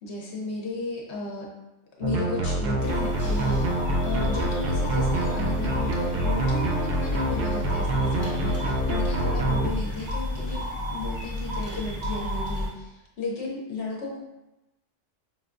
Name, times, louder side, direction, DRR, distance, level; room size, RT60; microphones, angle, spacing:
voice 1, 0.0-1.5 2.0-10.6 10.9-14.2, left 2 dB, 60° left, -2 dB, 1.0 m, -34 dB
sound 1, 2.0-9.7, right 1 dB, 65° right, 0.4 m, -26 dB
sound 2, 2.8-12.7, left 1 dB, 20° right, 0.8 m, -31 dB
5.5 x 2.3 x 2.4 m, 0.96 s
omnidirectional pair, 1.3 m